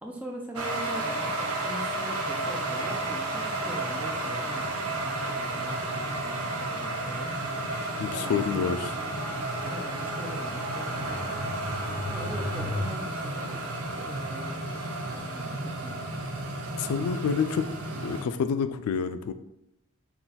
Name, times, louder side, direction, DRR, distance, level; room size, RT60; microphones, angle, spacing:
voice 1, 0.0-8.8 9.6-11.4 12.1-13.7 14.0-16.0, equal, 5° right, 0 dB, 0.5 m, -42 dB
sound 1, 0.6-18.2, right 2 dB, 85° right, 0.7 m, -32 dB
sound 2, 2.3-12.8, left 1 dB, 35° left, 0.8 m, -40 dB
voice 2, 8.0-8.9 16.8-17.7 18.0-19.3, left 6 dB, 85° left, 14 dB, 0.3 m, -28 dB
4.0 x 2.3 x 4.0 m, 0.87 s
head